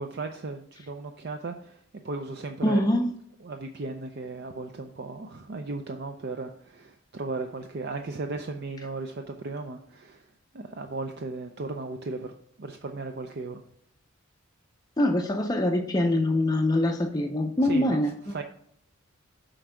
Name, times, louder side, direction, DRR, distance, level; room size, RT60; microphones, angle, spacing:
voice 1, 0.0-2.8 3.4-10.3 10.5-12.3 12.6-13.6 17.6-18.4, right 3 dB, 50° right, 5 dB, 0.5 m, -36 dB
voice 2, 2.6-3.1 15.0-18.4, left 1 dB, 20° left, 3 dB, 0.5 m, -24 dB
7.7 x 4.6 x 4.9 m, 0.68 s
head